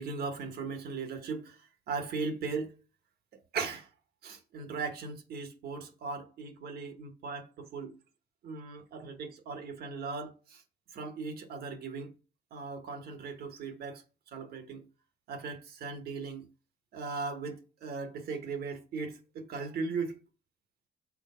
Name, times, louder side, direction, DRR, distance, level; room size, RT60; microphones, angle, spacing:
voice 1, 0.0-2.7 3.3-3.9 4.2-8.0 8.4-10.6 10.9-12.1 12.5-14.0 14.3-14.8 15.3-16.5 16.9-20.2, right 4 dB, 75° right, 1.3 m, -38 dB
6.4 x 4.1 x 5.5 m
cardioid pair, 75°, 16 cm